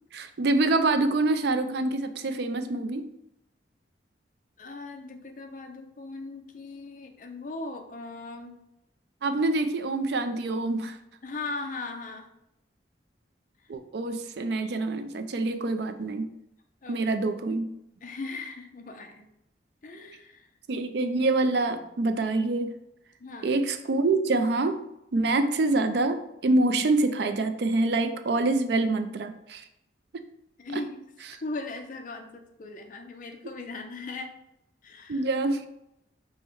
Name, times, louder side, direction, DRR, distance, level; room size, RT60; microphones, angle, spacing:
voice 1, 0.1-3.1 9.2-11.0 13.7-16.3 16.9-17.7 20.7-22.7 23.4-24.8 25.1-29.6 30.1-30.2 30.7-30.8 35.1-35.7, right 2 dB, 60° right, 9 dB, 0.4 m, -26 dB
voice 2, 4.6-8.6 11.2-12.3 16.8-17.1 18.0-19.3 19.8-20.5 23.2-23.6 30.6-31.0 31.3-34.4 34.8-35.3, left 3 dB, 45° left, 5 dB, 0.5 m, -38 dB
5.4 x 2.1 x 4.5 m, 0.83 s
head